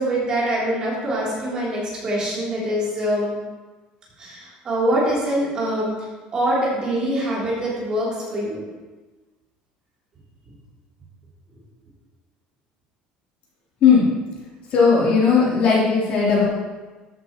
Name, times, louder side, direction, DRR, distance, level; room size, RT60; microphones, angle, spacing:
voice 1, 0.0-3.3 4.2-8.6 10.5-10.6, right 1 dB, 25° right, -6 dB, 3.1 m, -24 dB
voice 2, 13.8-14.1 14.7-16.4, left 5 dB, 45° left, -6 dB, 3.3 m, -17 dB
13.5 x 8.2 x 3.0 m, 1.3 s
cardioid pair, 175°, 3 cm